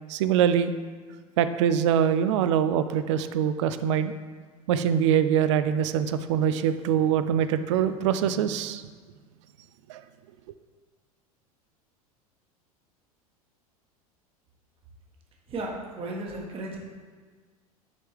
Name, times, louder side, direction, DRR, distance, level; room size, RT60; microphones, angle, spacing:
voice 1, 0.1-0.7 1.4-4.1 4.7-8.8 9.9-10.0, right 9 dB, 50° right, 11 dB, 0.4 m, -24 dB
voice 2, 15.5-16.8, right 2 dB, 30° right, 0 dB, 1.3 m, -34 dB
9.7 x 4.5 x 3.2 m, 1.5 s
figure-of-eight pair, 80°, 19 cm